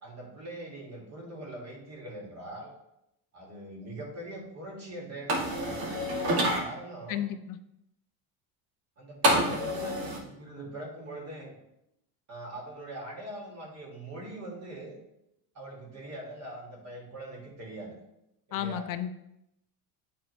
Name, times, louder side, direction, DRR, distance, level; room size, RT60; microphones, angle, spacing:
voice 1, 0.0-2.7 3.3-6.0 6.6-7.3 9.0-11.5 12.3-15.0 15.5-17.9 18.5-18.9, right 1 dB, 35° right, -2 dB, 2.3 m, -42 dB
sound 1, 5.3-6.6 9.2-10.2, right 1 dB, 60° right, 1.8 m, -27 dB
voice 2, 7.1-7.6 18.5-19.1, left 10 dB, 50° left, 11 dB, 0.6 m, -32 dB
9.3 x 4.2 x 3.3 m, 0.82 s
cardioid pair, 120°, 43 cm